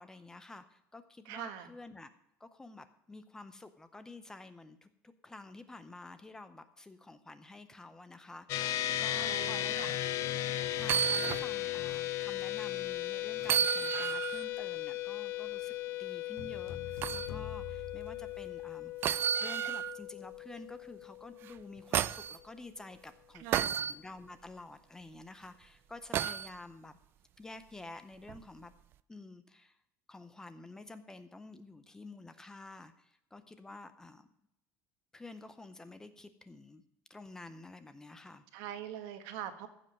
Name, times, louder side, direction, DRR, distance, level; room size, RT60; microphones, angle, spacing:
voice 1, 0.0-2.1 2.4-10.0 10.7-15.7 16.0-27.0 27.4-28.7 29.1-29.8 30.1-34.3 35.1-36.8 37.1-38.4, left 2 dB, 10° left, 11 dB, 0.6 m, -50 dB
voice 2, 1.3-1.7 9.1-9.9 23.4-23.9 38.5-39.7, right 10 dB, 70° right, 8 dB, 1.4 m, -43 dB
sound 1, 8.5-22.1, left 13 dB, 50° left, 0.7 m, -37 dB
sound 2, 10.8-11.5 11.9-12.0 13.4-14.4 17.0-17.3 19.0-20.0 21.4-22.4 23.5-23.9 26.1-26.5 28.3-28.4, right 9 dB, 35° right, 0.3 m, -31 dB
sound 3, 16.4-18.9, left 7 dB, 70° left, 2.5 m, -46 dB
15.0 x 5.4 x 7.5 m, 0.77 s
cardioid pair, 165°, 6 cm